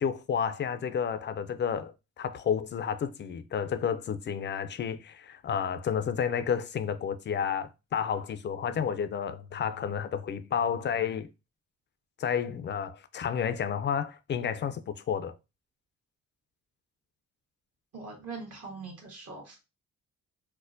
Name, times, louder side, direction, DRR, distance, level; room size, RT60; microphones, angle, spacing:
voice 1, 0.0-11.3 12.2-15.3, left 7 dB, 40° left, 0.4 m, -31 dB
voice 2, 17.9-19.6, right 4 dB, 55° right, 1.4 m, -42 dB
4.2 x 2.1 x 2.6 m
cardioid pair, 90°, 30 cm